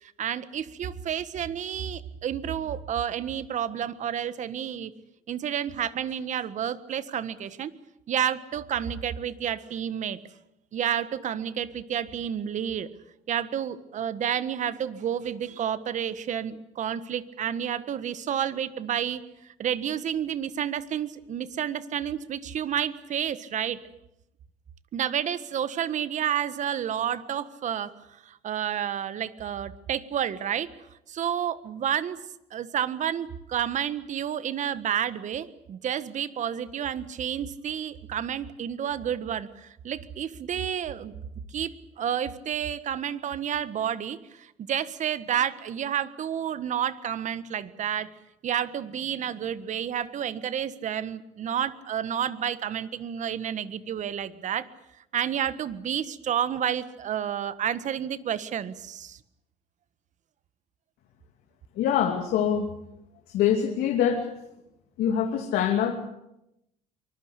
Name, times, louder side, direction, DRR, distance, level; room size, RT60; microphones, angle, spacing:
voice 1, 0.0-4.9 5.3-7.7 8.1-10.2 10.7-12.9 13.3-23.8 24.9-30.7 31.1-32.2 32.5-41.1 41.5-48.1 48.4-54.7 55.1-59.2, right 9 dB, 50° right, 14 dB, 1.6 m, -30 dB
voice 2, 61.8-62.7 63.3-64.3 65.0-65.9, left 9 dB, 70° left, 3 dB, 2.8 m, -24 dB
24.0 x 20.5 x 8.3 m, 0.84 s
supercardioid pair, 95°, 16 cm